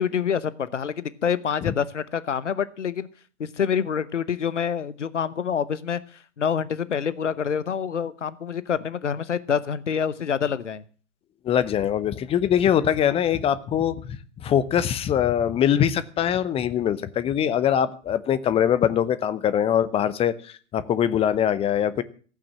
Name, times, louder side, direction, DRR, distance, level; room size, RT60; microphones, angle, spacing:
voice 1, 0.0-3.1 3.4-10.8, left 7 dB, 75° left, 17 dB, 1.0 m, -27 dB
voice 2, 11.4-22.0, left 9 dB, 15° left, 15 dB, 0.8 m, -23 dB
15.5 x 8.8 x 7.5 m, 0.41 s
figure-of-eight pair, 105°, 36 cm